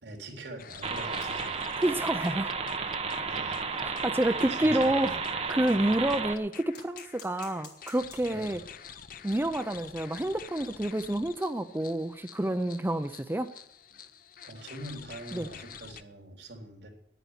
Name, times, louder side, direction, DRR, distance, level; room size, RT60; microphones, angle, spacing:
voice 1, 0.0-1.7 3.3-3.6 4.2-5.2 5.7-5.9 8.3-8.5 13.9-14.0 14.5-16.9, right 1 dB, 75° right, 2 dB, 3.6 m, -44 dB
sound 1, 0.6-16.0, left 7 dB, 50° left, 0.7 m, -48 dB
sound 2, 0.8-6.4, right 5 dB, 35° right, 1.1 m, -33 dB
sound 3, 1.2-6.0 6.7-8.6 8.9-9.1 9.4-9.5 9.8-9.9 10.5-13.6 14.0-14.3 15.4-15.5, left 5 dB, 70° left, 4.0 m, -58 dB
voice 2, 1.8-2.5 3.8-5.2 5.5-8.6 9.2-13.5 15.3-15.5, right 1 dB, 10° right, 8 dB, 0.5 m, -28 dB
10.5 x 9.2 x 9.8 m, 0.73 s
head